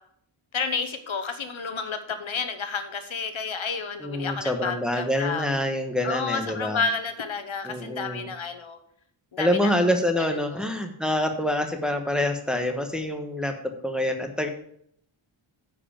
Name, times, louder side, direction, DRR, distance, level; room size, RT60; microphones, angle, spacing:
voice 1, 0.5-5.5 6.0-8.8 9.3-9.5 10.5-10.7, left 5 dB, 70° left, 8 dB, 1.0 m, -30 dB
voice 2, 4.0-6.8 7.6-8.3 9.4-14.5, left 1 dB, ahead, 4 dB, 1.2 m, -26 dB
10.0 x 4.9 x 7.4 m, 0.68 s
wide cardioid pair, 105°, 49 cm